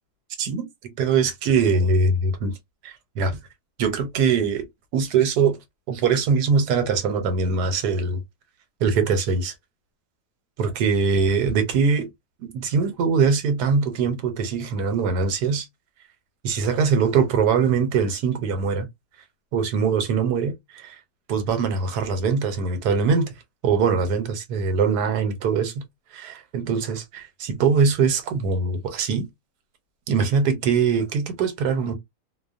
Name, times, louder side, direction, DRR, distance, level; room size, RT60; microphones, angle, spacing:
voice 1, 0.4-2.5 2.8-3.4 3.8-4.7 4.9-5.6 5.9-8.2 8.8-9.5 10.6-12.1 12.4-15.7 16.4-18.9 19.5-21.0 21.3-23.3 23.6-25.8 26.1-29.2 30.1-32.0, right 5 dB, 75° right, 1.2 m, -22 dB
2.8 x 2.1 x 2.4 m
omnidirectional pair, 1.8 m